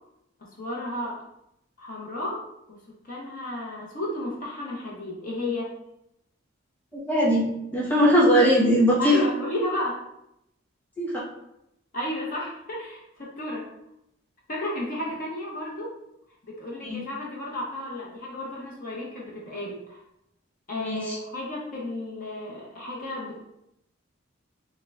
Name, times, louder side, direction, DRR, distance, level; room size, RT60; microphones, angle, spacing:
voice 1, 0.4-1.2 1.8-2.8 3.0-5.7 9.0-10.0 11.9-13.7 14.5-15.9 16.4-20.0 20.7-23.5, left 1 dB, 45° left, -4 dB, 0.7 m, -33 dB
voice 2, 6.9-7.4 7.7-9.1 11.0-11.2 16.8-17.0 20.7-21.2, equal, 10° left, -6 dB, 1.0 m, -20 dB
6.3 x 2.1 x 2.3 m, 0.82 s
head